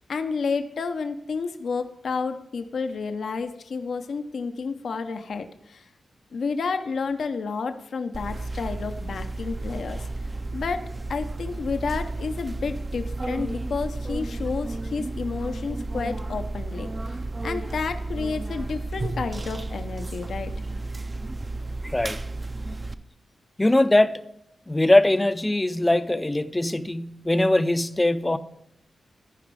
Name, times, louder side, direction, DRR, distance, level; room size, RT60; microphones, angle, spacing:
voice 1, 0.1-5.9 6.3-10.1 10.5-10.8 11.1-17.2 17.4-20.5, left 5 dB, 70° left, 0.7 m, -30 dB
sound 1, 8.1-22.9, right 2 dB, 30° right, 0.6 m, -32 dB
voice 2, 21.8-22.2 23.6-24.2 24.7-28.4, left 1 dB, 20° left, 0.5 m, -21 dB
14.0 x 5.1 x 4.8 m
cardioid pair, 65°, 0 cm